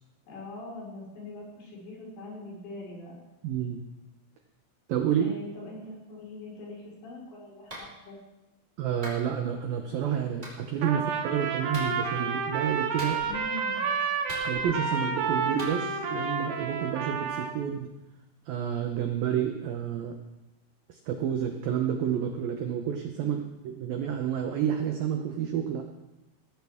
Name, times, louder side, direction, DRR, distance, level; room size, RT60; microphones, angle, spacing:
voice 1, 0.3-3.2 5.2-8.2 13.2-13.9 23.2-23.3, left 2 dB, 80° left, -4 dB, 7.1 m, -42 dB
voice 2, 3.4-3.8 4.9-5.3 8.8-13.2 14.5-17.9 18.5-20.2 20.9-23.4 23.8-25.8, right 9 dB, 85° right, 4 dB, 2.0 m, -29 dB
Clapping, 7.7-7.9 9.0-9.2 10.4-10.6 11.7-11.9 13.0-13.4 14.3-14.8 15.6-15.8, right 1 dB, 15° right, 4.1 m, -41 dB
Trumpet, 10.8-17.6, right 5 dB, 70° right, 3.2 m, -30 dB
19.0 x 14.0 x 3.6 m, 1.0 s
omnidirectional pair, 5.6 m